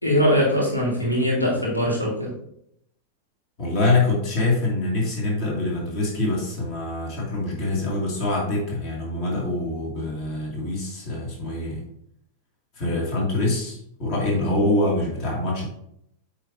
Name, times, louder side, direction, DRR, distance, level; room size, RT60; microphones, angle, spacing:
voice 1, 0.0-2.3, equal, 85° left, -4 dB, 1.7 m, -21 dB
voice 2, 3.6-11.8 12.8-15.6, left 2 dB, 40° left, -2 dB, 2.1 m, -25 dB
8.5 x 4.8 x 2.6 m, 0.74 s
figure-of-eight pair, 90°, 0 cm